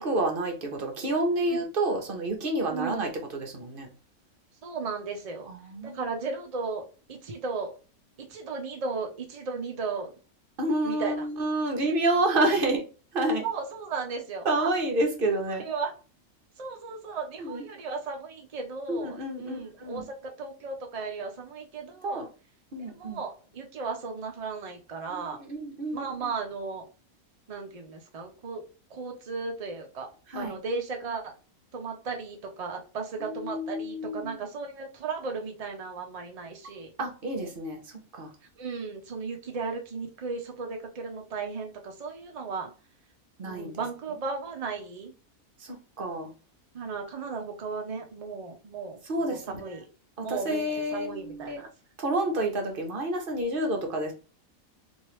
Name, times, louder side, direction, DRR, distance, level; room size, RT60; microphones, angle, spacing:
voice 1, 0.0-3.9 5.5-6.0 10.6-12.8 13.1-13.4 14.4-15.6 17.4-17.6 18.9-20.0 22.0-22.3 22.7-23.2 25.1-25.2 25.5-26.0 30.3-30.5 33.3-34.3 37.0-37.8 38.2-38.3 43.4-43.8 45.6-46.3 49.1-49.6 50.2-51.6 52.0-54.1, right 1 dB, 45° right, 3 dB, 0.8 m, -29 dB
voice 2, 2.7-3.2 4.6-5.5 5.8-6.8 7.1-7.7 8.3-10.1 10.8-11.3 12.3-12.8 13.4-14.7 15.5-15.9 16.6-22.2 22.8-25.4 25.9-26.9 27.5-28.6 28.9-30.1 30.3-31.3 31.7-36.9 38.6-42.7 43.4-45.1 46.7-49.9 50.2-51.7, right 4 dB, 65° right, 3 dB, 0.3 m, -35 dB
3.0 x 2.7 x 3.0 m, 0.37 s
omnidirectional pair, 1.5 m